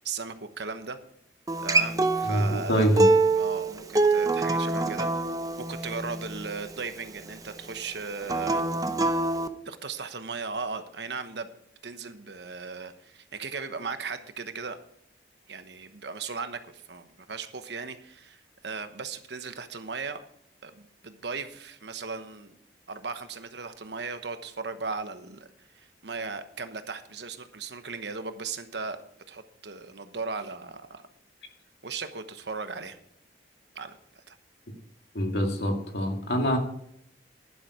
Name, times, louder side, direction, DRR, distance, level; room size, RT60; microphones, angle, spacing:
voice 1, 0.0-1.0 1.6-2.9 3.3-5.1 5.6-8.7 9.6-11.5 11.8-14.8 15.5-20.2 20.6-22.5 22.9-25.5 25.7-29.0 29.3-31.0 31.8-33.0 33.7-34.4, right 4 dB, 80° right, 9 dB, 1.1 m, -37 dB
Acoustic guitar, 1.5-6.7 8.2-9.5, right 3 dB, 20° right, 0.6 m, -25 dB
voice 2, 2.2-3.0 35.1-36.6, equal, 75° left, 3 dB, 2.1 m, -25 dB
11.0 x 10.5 x 4.9 m, 0.72 s
head